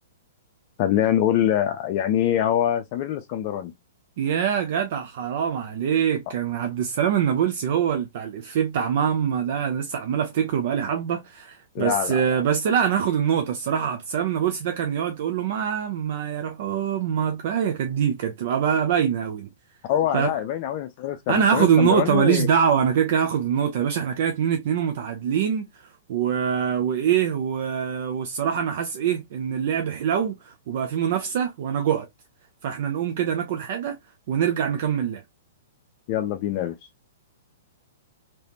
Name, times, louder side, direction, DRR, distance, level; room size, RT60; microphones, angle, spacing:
voice 1, 0.8-3.7 11.7-12.2 19.8-22.5 36.1-36.8, left 11 dB, 45° left, 0.5 m, -24 dB
voice 2, 4.2-19.5 20.1-20.3 21.3-32.1 32.6-34.0 34.3-35.2, right 8 dB, 55° right, 0.5 m, -24 dB
3.2 x 3.0 x 2.7 m
hypercardioid pair, 115°, 0 cm